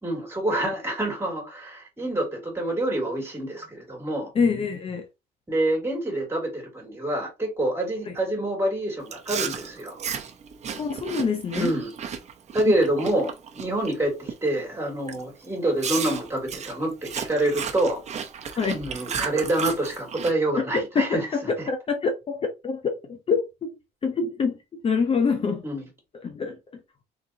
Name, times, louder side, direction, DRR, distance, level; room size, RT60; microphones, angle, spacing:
voice 1, 0.0-4.3 5.5-9.9 11.6-11.9 12.5-18.0 18.5-21.3 25.6-25.8, right 1 dB, 15° right, 2.8 m, -27 dB
voice 2, 4.3-5.1 8.1-8.2 10.8-11.7 12.7-12.8 18.6-18.8 20.7-23.8 24.0-25.7 26.1-26.8, left 5 dB, 35° left, 0.7 m, -26 dB
Chewing mastication, 9.1-13.9 14.3-14.6 15.1-15.2 15.8-20.3, right 7 dB, 40° right, 0.9 m, -34 dB
4.0 x 3.8 x 2.8 m
cardioid pair, 110°, 17 cm